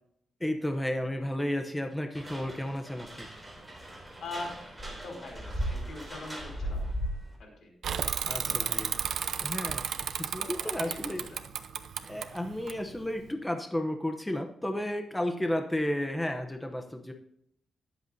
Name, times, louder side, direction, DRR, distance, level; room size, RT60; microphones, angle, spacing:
voice 1, 0.4-3.3 8.3-8.9 9.4-11.3 12.0-17.1, left 1 dB, 10° left, 5 dB, 0.8 m, -33 dB
sound 1, 2.1-7.4, equal, 10° right, 3.3 m, -37 dB
voice 2, 4.2-6.9 7.4-7.7 8.3-8.8 9.1-9.2 10.4-11.4, left 2 dB, 75° left, 0 dB, 5.5 m, -43 dB
Bicycle / Mechanisms, 7.8-13.3, right 8 dB, 80° right, 0.7 m, -33 dB
20.5 x 8.0 x 2.7 m, 0.74 s
wide cardioid pair, 135°, 0 cm